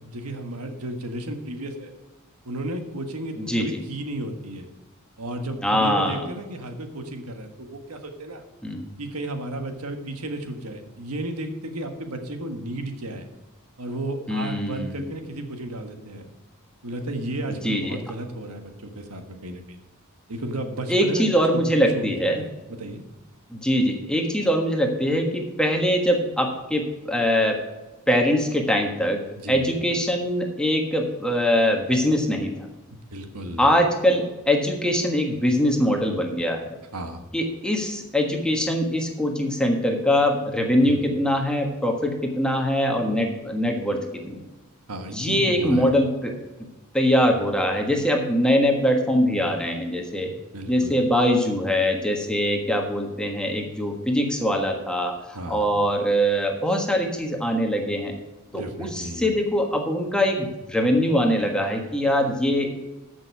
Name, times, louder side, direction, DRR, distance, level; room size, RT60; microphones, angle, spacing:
voice 1, 0.0-1.9 2.4-4.7 5.2-8.4 9.0-13.2 13.8-16.3 16.8-19.8 20.3-21.3 21.5-21.6 21.9-23.0 29.3-29.7 32.9-33.7 36.9-37.2 40.8-41.0 44.9-45.9 50.2-51.0 55.3-55.7 58.5-59.2, right 1 dB, 90° right, 5 dB, 1.6 m, -33 dB
voice 2, 5.6-6.3 8.6-8.9 14.3-15.1 17.6-18.0 20.9-22.4 23.5-27.6 28.1-29.2 29.5-32.5 33.6-36.8 37.3-44.5 45.1-46.3 46.9-50.3 50.7-58.2 58.5-62.7, equal, 5° left, 2 dB, 1.4 m, -22 dB
14.0 x 6.3 x 4.8 m, 1.1 s
head